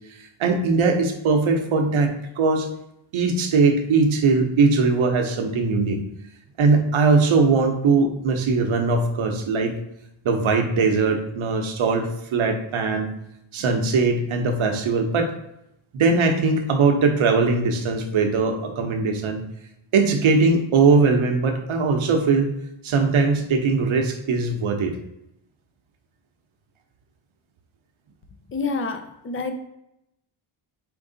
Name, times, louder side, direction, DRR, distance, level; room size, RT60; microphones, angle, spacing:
voice 1, 0.2-2.7 3.1-6.0 6.6-9.8 10.2-13.1 13.5-15.3 15.9-19.4 19.9-22.5 22.8-25.0, right 4 dB, 75° right, 5 dB, 0.8 m, -20 dB
voice 2, 28.5-29.5, left 4 dB, 30° left, 6 dB, 0.4 m, -28 dB
4.6 x 2.6 x 3.8 m, 0.82 s
wide cardioid pair, 145°, 49 cm